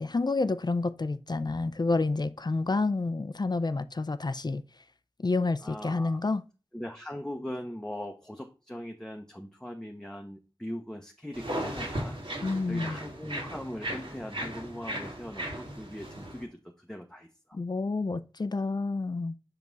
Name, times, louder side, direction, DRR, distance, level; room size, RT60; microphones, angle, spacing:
voice 1, 0.0-4.6 5.2-6.4 12.4-13.0 17.5-19.3, left 3 dB, 45° left, 0.4 m, -29 dB
voice 2, 5.6-6.2 6.7-12.2 12.7-17.3, equal, 5° left, 0.8 m, -40 dB
sound 1, 11.3-16.4, right 1 dB, 60° right, 2.0 m, -36 dB
6.1 x 5.3 x 3.9 m
wide cardioid pair, 65°, 10 cm